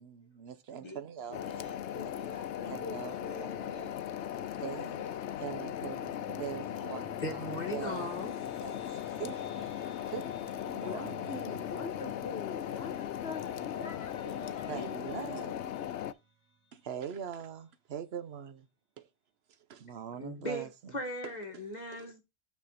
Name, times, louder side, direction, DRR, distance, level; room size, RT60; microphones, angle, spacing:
voice 1, 0.0-1.4 2.0-2.1 2.7-3.5 4.6-5.1 5.4-8.1 8.6-9.4 10.1-10.3 10.6-11.9 14.7-15.6 16.7-18.7 19.0-19.1 19.7-20.7 21.5-21.6 21.9-22.1, right 8 dB, 65° right, 1.0 m, -42 dB
voice 2, 0.7-2.5 2.9-5.2 6.4-7.1 14.2-14.9, equal, 25° left, 2.3 m, -51 dB
sound 1, 1.3-16.1, left 10 dB, 80° left, 0.9 m, -38 dB
voice 3, 1.9-3.9 10.7-14.2 14.5-14.7 15.2-15.6, left 4 dB, 60° left, 1.4 m, -44 dB
sound 2, 5.9-16.7, right 3 dB, 15° right, 4.4 m, -55 dB
voice 4, 7.2-8.5 20.2-22.2, left 1 dB, 40° left, 2.0 m, -38 dB
6.3 x 6.1 x 4.1 m
omnidirectional pair, 1.2 m